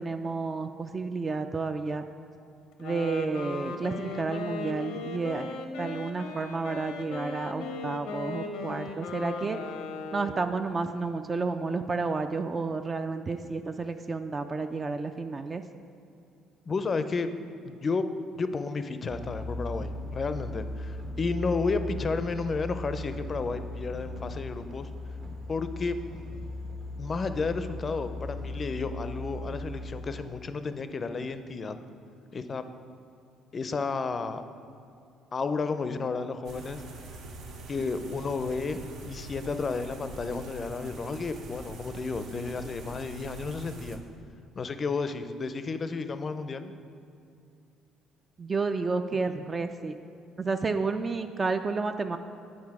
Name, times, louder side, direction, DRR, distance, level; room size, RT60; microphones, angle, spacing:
voice 1, 0.0-2.0 2.8-9.6 10.1-15.6 48.4-50.0 50.4-52.2, right 4 dB, 35° right, 7 dB, 0.3 m, -31 dB
Wind instrument woodwind instrument, 2.7-10.6, left 3 dB, 85° left, 0.6 m, -37 dB
voice 2, 16.7-17.3 17.6-18.0 18.3-24.9 25.5-26.0 27.0-31.8 32.3-32.6 33.5-34.4 35.3-36.8 37.7-38.8 39.1-44.0 44.6-46.7, left 4 dB, 40° left, 10 dB, 0.4 m, -32 dB
sound 1, 19.1-30.3, left 1 dB, 60° right, 1.3 m, -38 dB
sound 2, 36.4-44.0, right 3 dB, 75° right, 0.7 m, -44 dB
8.8 x 4.1 x 4.7 m, 2.5 s
supercardioid pair, 75°, 0 cm